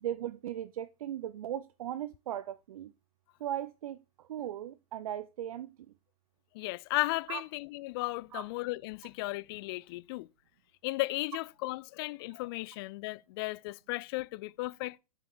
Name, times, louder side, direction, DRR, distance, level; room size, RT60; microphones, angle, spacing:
voice 1, 0.0-2.9 3.4-5.7 7.3-7.4 8.3-8.4, right 11 dB, 60° right, 0.6 m, -38 dB
voice 2, 6.5-10.3 10.8-15.0, left 20 dB, 40° left, 0.4 m, -35 dB
7.1 x 6.9 x 4.4 m
figure-of-eight pair, 110°, 20 cm